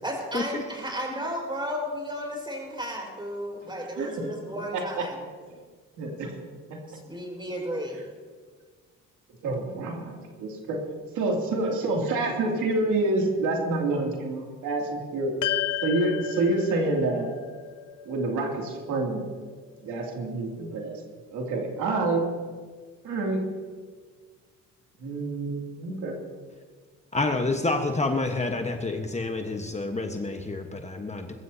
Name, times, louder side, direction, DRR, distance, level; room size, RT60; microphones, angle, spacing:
voice 1, 0.0-5.2 6.9-8.0, equal, 15° right, 0 dB, 4.7 m, -33 dB
voice 2, 4.0-4.3 4.7-5.0 6.0-6.3 6.7-6.8 9.4-10.8 11.1-15.3 15.8-17.3 18.1-19.2 19.8-21.0 21.3-22.3 23.0-23.4 25.0-26.2, right 2 dB, 85° right, 0 dB, 2.8 m, -27 dB
sound 1, 15.4-19.9, left 12 dB, 85° left, 0.8 m, -34 dB
voice 3, 27.1-31.3, left 2 dB, 20° left, 4 dB, 1.3 m, -28 dB
21.5 x 14.0 x 2.8 m, 1.5 s
cardioid pair, 90°, 30 cm